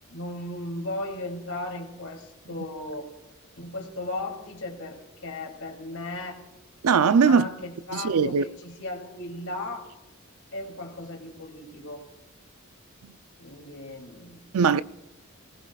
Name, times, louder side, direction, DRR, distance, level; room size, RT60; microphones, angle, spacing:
voice 1, 0.1-3.1 3.6-6.4 7.2-9.9 10.5-12.1 13.4-14.5, left 2 dB, 70° left, 2.9 m, -36 dB
voice 2, 6.8-7.5 7.9-8.4 14.5-14.8, right 5 dB, 85° right, 0.5 m, -20 dB
20.0 x 19.5 x 2.4 m
head